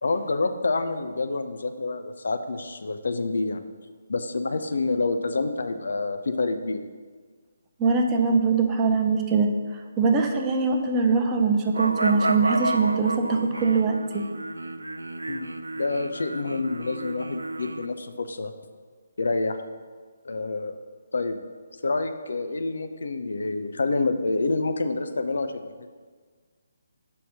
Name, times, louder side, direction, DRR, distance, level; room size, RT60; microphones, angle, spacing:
voice 1, 0.0-3.7 4.1-6.8 15.3-15.5 15.8-18.5 19.2-19.6 20.2-20.7 21.1-21.4 21.8-25.7, left 3 dB, 60° left, 8 dB, 0.5 m, -27 dB
voice 2, 7.8-9.5 10.0-14.2, right 4 dB, 15° right, 2 dB, 0.6 m, -22 dB
sound 1, 11.7-17.9, right 2 dB, 80° right, 0.4 m, -31 dB
5.7 x 4.1 x 6.1 m, 1.5 s
figure-of-eight pair, 140°, 0 cm